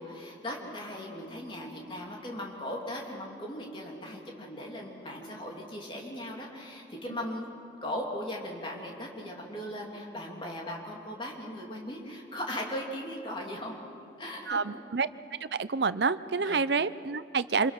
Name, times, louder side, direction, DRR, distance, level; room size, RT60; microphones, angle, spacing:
voice 1, 0.0-7.5 7.8-13.8 14.2-14.6 16.4-16.6, left 1 dB, 30° left, -1 dB, 3.1 m, -38 dB
voice 2, 14.5-15.1 15.4-17.7, right 5 dB, 70° right, 15 dB, 0.6 m, -28 dB
27.0 x 22.0 x 5.9 m, 2.5 s
head